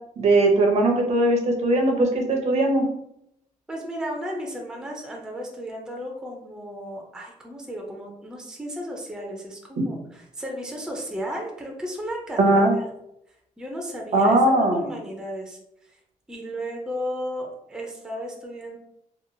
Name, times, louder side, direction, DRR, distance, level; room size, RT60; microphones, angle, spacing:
voice 1, 0.2-2.9 12.4-12.7 14.1-14.8, right 2 dB, 50° right, 2 dB, 0.6 m, -19 dB
voice 2, 3.7-12.9 13.6-15.6 15.9-16.0 16.3-18.8, equal, 5° right, 0 dB, 0.4 m, -34 dB
2.8 x 2.3 x 2.6 m, 0.78 s
wide cardioid pair, 175°, 14 cm